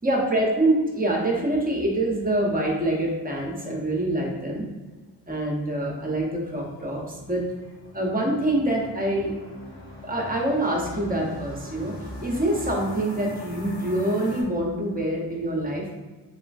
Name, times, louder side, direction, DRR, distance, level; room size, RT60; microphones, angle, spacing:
voice 1, 0.0-4.7 5.3-7.4 7.9-9.3 10.0-12.0 12.2-16.0, right 1 dB, 20° right, -1 dB, 0.9 m, -25 dB
sound 1, 6.6-14.4, left 1 dB, 80° left, 0.8 m, -42 dB
3.1 x 3.0 x 2.5 m, 1.3 s
cardioid pair, 45°, 42 cm